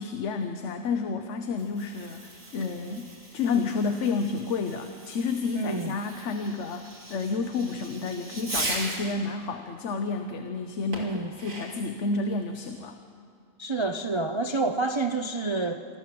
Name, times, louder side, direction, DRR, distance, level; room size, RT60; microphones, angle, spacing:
voice 1, 0.0-13.0, left 4 dB, 65° left, 6 dB, 1.2 m, -30 dB
Fireworks, 1.5-9.2 10.9-11.9, right 2 dB, 85° right, 3.3 m, -39 dB
voice 2, 5.5-5.9 10.9-11.3 13.6-15.8, right 3 dB, 30° right, 6 dB, 0.5 m, -28 dB
26.0 x 13.0 x 7.6 m, 2.3 s
omnidirectional pair, 1.4 m